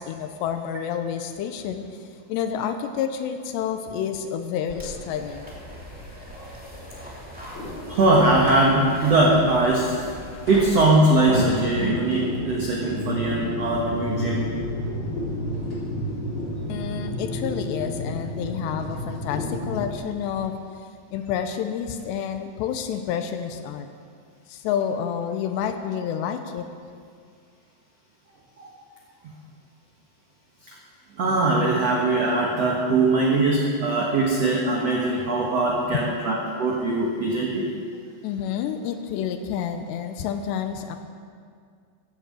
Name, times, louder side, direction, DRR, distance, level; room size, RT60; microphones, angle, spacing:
voice 1, 0.0-5.6 16.7-20.6 21.1-23.9 24.5-26.7 35.7-36.1 38.2-41.0, left 8 dB, 80° left, 8 dB, 2.7 m, -29 dB
sound 1, 4.7-19.9, left 1 dB, 30° left, 3.7 m, -31 dB
sound 2, 4.7-11.3, equal, 5° right, 0.7 m, -41 dB
voice 2, 7.9-9.9 10.5-14.4 28.6-28.7 30.7-30.8 31.2-37.7, right 2 dB, 90° right, -2 dB, 1.4 m, -21 dB
14.5 x 9.1 x 7.6 m, 2.2 s
omnidirectional pair, 5.3 m